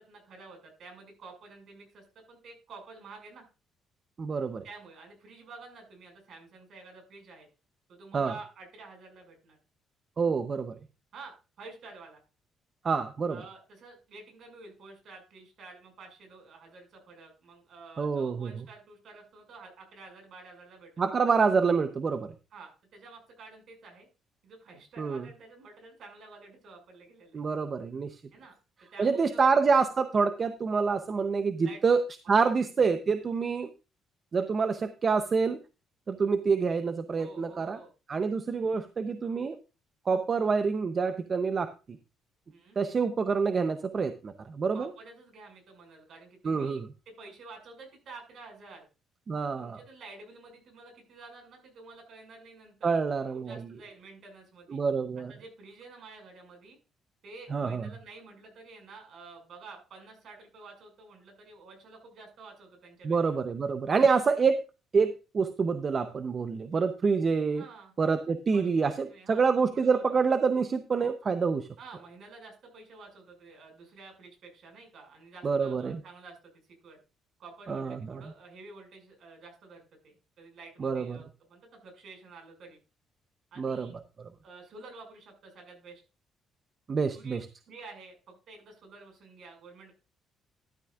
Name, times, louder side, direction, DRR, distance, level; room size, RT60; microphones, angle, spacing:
voice 1, 0.0-3.5 4.6-7.5 7.9-9.6 11.1-12.2 13.3-21.0 22.5-24.1 24.4-27.4 28.3-28.6 28.9-29.4 31.6-32.0 37.2-37.9 42.5-42.8 44.7-46.8 47.2-48.9 49.4-53.0 53.3-54.8 55.3-56.8 57.2-63.2 67.5-67.9 68.5-70.0 71.8-76.5 76.8-77.0 77.4-82.8 83.5-84.0 84.4-86.0 87.1-87.4 87.7-89.9, right 3 dB, 55° right, 3 dB, 5.9 m, -50 dB
voice 2, 4.2-4.6 8.1-8.3 10.2-10.7 12.8-13.4 18.0-18.5 21.0-22.3 25.0-25.2 27.3-28.2 29.0-32.0 32.3-33.7 34.3-35.6 36.1-37.8 38.1-39.6 40.1-41.7 42.8-44.9 46.4-46.9 49.3-49.8 52.8-53.6 54.7-55.3 57.5-57.9 63.0-64.6 64.9-67.6 68.0-71.7 75.4-76.0 77.7-78.2 80.8-81.2 83.6-83.9 86.9-87.4, right 5 dB, 30° right, 9 dB, 0.7 m, -27 dB
13.0 x 11.5 x 2.4 m, 0.30 s
cardioid pair, 155°, 0 cm